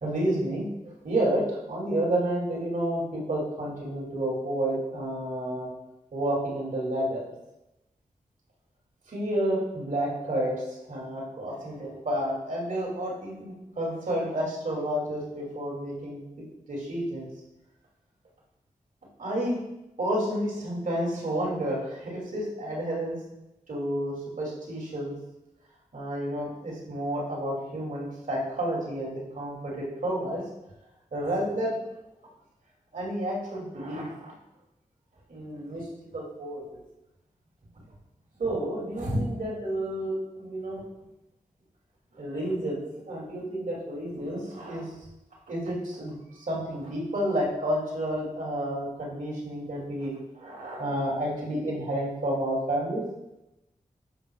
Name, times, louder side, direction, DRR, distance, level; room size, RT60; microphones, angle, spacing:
voice 1, 0.0-5.7 6.1-7.2 9.1-16.2 16.7-17.3 19.2-19.6 20.0-23.2 23.7-25.1 25.9-30.4 31.1-31.8 32.9-34.3 35.3-35.9 36.1-36.8 38.4-40.8 42.1-44.9 45.5-53.0, right 1 dB, 70° right, -4 dB, 2.5 m, -30 dB
11.0 x 5.8 x 2.3 m, 0.94 s
cardioid pair, 40°, 14 cm